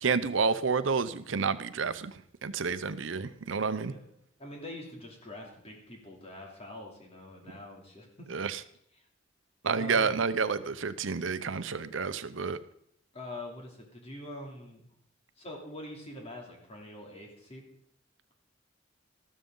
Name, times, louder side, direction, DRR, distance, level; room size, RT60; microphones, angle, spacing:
voice 1, 0.0-2.1 2.4-3.9 8.3-8.6 9.6-12.6, right 5 dB, 75° right, 13 dB, 0.7 m, -29 dB
voice 2, 4.4-8.3 9.7-10.2 13.1-14.9 15.4-17.6, left 1 dB, 35° left, 0 dB, 2.9 m, -44 dB
14.0 x 12.5 x 3.9 m, 0.70 s
head